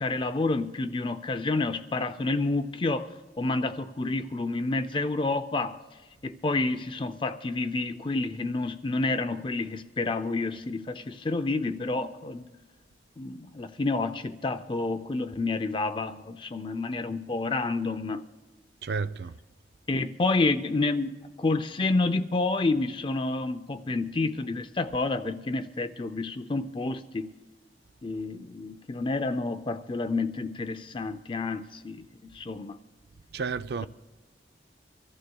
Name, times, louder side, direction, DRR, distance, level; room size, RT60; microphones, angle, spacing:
voice 1, 0.0-5.8 6.2-12.5 13.2-18.2 19.9-27.3 28.0-32.8, left 3 dB, 25° left, 0.4 m, -29 dB
voice 2, 18.8-19.4 33.3-33.9, right 5 dB, 60° right, 0.4 m, -31 dB
25.5 x 14.5 x 2.3 m
head